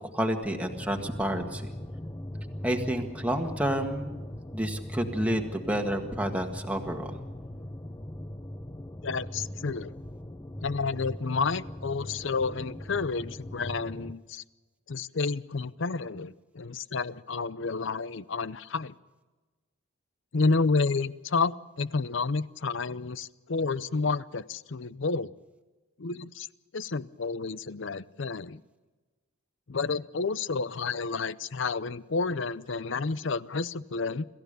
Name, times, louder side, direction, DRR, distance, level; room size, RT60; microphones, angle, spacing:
voice 1, 0.0-1.7 2.6-4.1 4.5-7.2, right 1 dB, 5° right, 3 dB, 1.7 m, -29 dB
sound 1, 0.7-14.1, left 1 dB, 15° left, 0.6 m, -40 dB
voice 2, 9.0-9.9 10.6-14.4 14.9-18.9 20.3-25.3 26.0-26.5 26.7-28.6 29.7-34.2, left 4 dB, 60° left, 18 dB, 0.6 m, -30 dB
26.5 x 14.5 x 6.8 m, 1.2 s
head